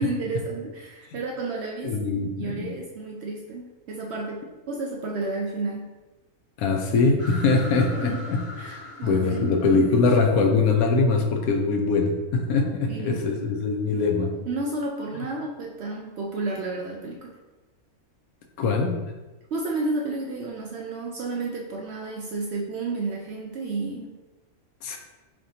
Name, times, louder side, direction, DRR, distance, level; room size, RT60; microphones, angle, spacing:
voice 1, 0.0-2.1 2.4-5.9 8.0-8.2 8.6-9.6 12.9-13.2 14.4-17.3 19.5-24.1, right 3 dB, 65° right, 0 dB, 0.7 m, -31 dB
voice 2, 1.8-2.7 6.6-14.3 15.1-15.2 18.6-19.0 24.8-25.0, left 4 dB, 80° left, 3 dB, 1.1 m, -23 dB
sound 1, 7.2-11.7, left 1 dB, 35° left, 0.8 m, -42 dB
5.1 x 3.3 x 2.7 m, 1.1 s
omnidirectional pair, 1.5 m